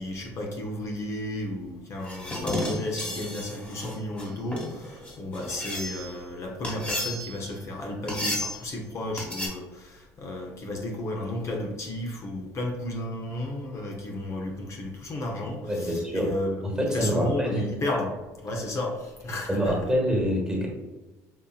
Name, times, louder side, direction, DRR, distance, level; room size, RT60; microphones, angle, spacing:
voice 1, 0.0-16.7 16.9-19.8, left 1 dB, 45° left, 1 dB, 0.7 m, -33 dB
sound 1, 2.0-6.2 6.6-7.5 8.1-8.7 9.2-9.5, left 1 dB, 20° left, 1.2 m, -33 dB
voice 2, 15.6-16.3 16.6-17.6 19.5-20.7, equal, 10° right, -1 dB, 1.2 m, -26 dB
5.5 x 2.6 x 2.4 m, 1.2 s
supercardioid pair, 90°, 7 cm